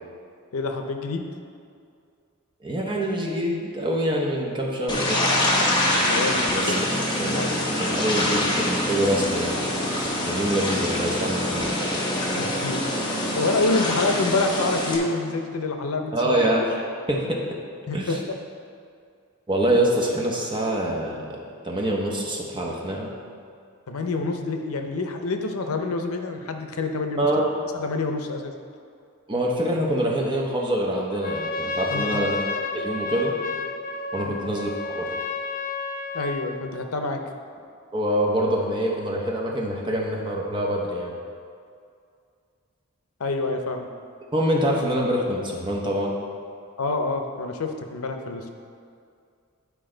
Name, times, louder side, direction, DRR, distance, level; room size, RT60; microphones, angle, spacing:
voice 1, 0.5-1.2 6.1-6.7 7.3-7.5 12.3-12.8 13.4-16.4 17.9-18.4 23.9-27.3 27.7-28.5 31.9-32.2 34.2-34.4 36.1-37.2 43.2-43.9 46.8-48.5, left 3 dB, 80° left, 5 dB, 0.6 m, -27 dB
voice 2, 2.6-5.2 6.5-6.8 7.2-9.6 10.2-11.8 16.1-16.8 17.1-17.6 17.9-18.2 19.5-21.4 21.6-23.1 27.2-27.5 29.3-32.4 32.7-33.3 34.1-35.1 37.9-41.1 44.3-46.1, right 1 dB, 20° right, -2 dB, 0.9 m, -25 dB
sound 1, 4.9-15.0, left 1 dB, 20° left, 0.9 m, -25 dB
Trumpet, 31.1-36.6, left 4 dB, 35° left, 0.4 m, -31 dB
9.9 x 4.6 x 3.8 m, 2.3 s
head